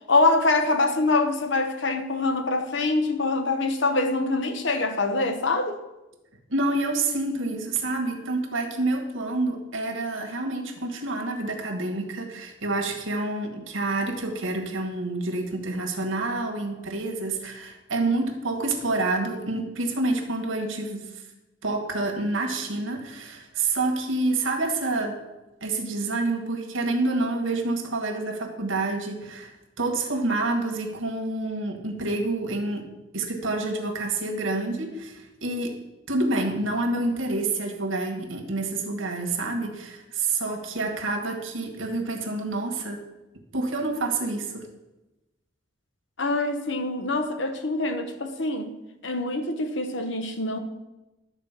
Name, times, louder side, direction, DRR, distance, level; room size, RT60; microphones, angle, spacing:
voice 1, 0.1-5.8 46.2-48.7 49.0-50.6, left 2 dB, 70° left, 1.0 m, -24 dB
voice 2, 6.5-21.1 21.6-25.2 25.6-35.8 36.1-43.0 43.5-44.7, right 2 dB, 90° right, 1.7 m, -28 dB
12.0 x 4.5 x 7.4 m
head